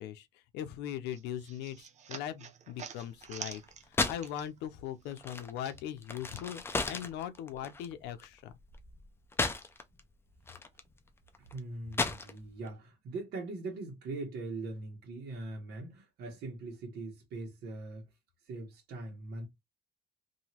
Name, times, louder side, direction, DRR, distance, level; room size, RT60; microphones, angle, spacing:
voice 1, 0.0-3.6 3.9-8.5, left 10 dB, 90° left, 0.5 m, -40 dB
sound 1, 1.1-4.8 5.0-6.5, right 7 dB, 45° right, 0.6 m, -47 dB
sound 2, 3.2-4.4 4.6-10.0 10.4-12.7, left 3 dB, 15° left, 0.5 m, -35 dB
voice 2, 11.4-18.1 18.5-19.5, right 2 dB, 70° right, 1.2 m, -41 dB
2.9 x 2.7 x 2.8 m
cardioid pair, 110°, 17 cm